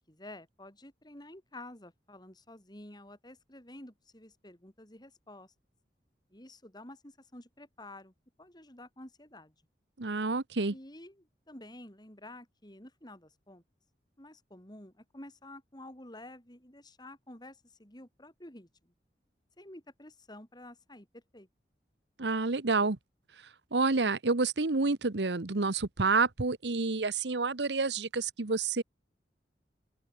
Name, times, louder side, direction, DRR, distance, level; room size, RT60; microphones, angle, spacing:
voice 1, 0.1-5.5 6.3-8.1 8.4-9.5 10.7-13.6 14.2-18.9 19.6-21.5, left 1 dB, 25° left, 5.3 m, -50 dB
voice 2, 10.0-10.7 22.2-23.0 23.7-28.8, right 3 dB, 80° right, 1.1 m, -29 dB
open air
head